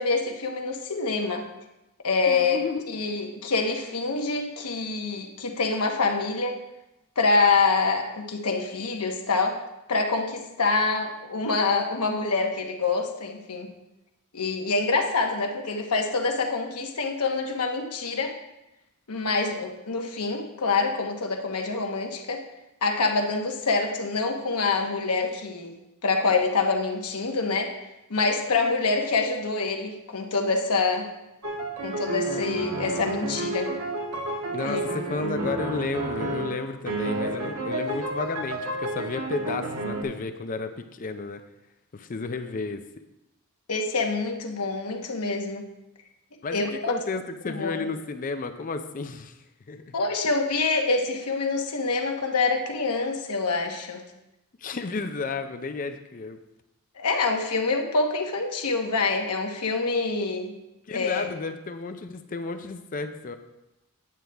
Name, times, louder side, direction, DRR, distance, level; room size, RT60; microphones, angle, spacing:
voice 1, 0.0-1.4 2.0-6.6 7.2-9.6 9.9-13.7 14.3-18.3 19.1-22.4 22.8-25.7 26.0-27.7 28.1-31.1 31.8-33.7 34.6-34.8 43.7-45.6 46.5-46.9 47.5-47.8 49.9-54.0 57.0-60.5 60.9-61.3, left 3 dB, 90° left, 3 dB, 1.1 m, -26 dB
voice 2, 2.3-3.0 34.5-41.4 41.9-42.8 46.4-49.4 49.7-50.0 54.6-56.4 60.9-63.4, left 3 dB, 35° left, 8 dB, 0.5 m, -32 dB
sound 1, 31.4-40.0, right 2 dB, 80° right, 1.3 m, -31 dB
9.1 x 7.7 x 3.4 m, 0.94 s
head